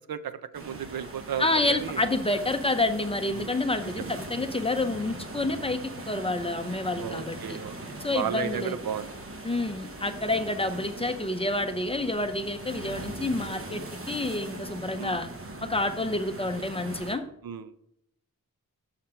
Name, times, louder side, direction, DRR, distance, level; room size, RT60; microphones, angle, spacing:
voice 1, 0.0-2.0 3.3-3.6 4.0-4.1 7.0-7.8 8.1-9.1 15.0-15.2 17.4-17.8, right 8 dB, 90° right, 12 dB, 0.6 m, -34 dB
sound 1, 0.5-17.1, right 2 dB, 40° right, 1.1 m, -40 dB
voice 2, 1.4-5.8 6.1-7.6 8.0-8.8 9.4-13.8 14.1-15.3 15.7-17.2, left 2 dB, 15° left, 8 dB, 0.6 m, -28 dB
6.7 x 5.8 x 4.4 m, 0.78 s
wide cardioid pair, 120°, 35 cm